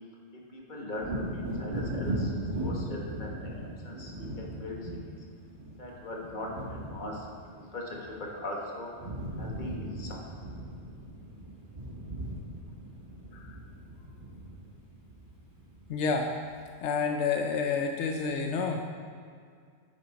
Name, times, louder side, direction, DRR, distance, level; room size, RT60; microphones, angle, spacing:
voice 1, 0.5-2.3 2.6-4.8 5.1-5.2 5.8-8.9 9.4-10.3, left 1 dB, 45° left, -2 dB, 1.5 m, -40 dB
Wind / Thunder, 1.0-8.6 8.8-16.1 16.5-16.6, right 1 dB, 50° right, 1.7 m, -38 dB
voice 2, 15.9-16.3 16.8-18.9, left 5 dB, 85° left, 3 dB, 0.9 m, -29 dB
9.7 x 6.3 x 4.1 m, 2.1 s
omnidirectional pair, 1.2 m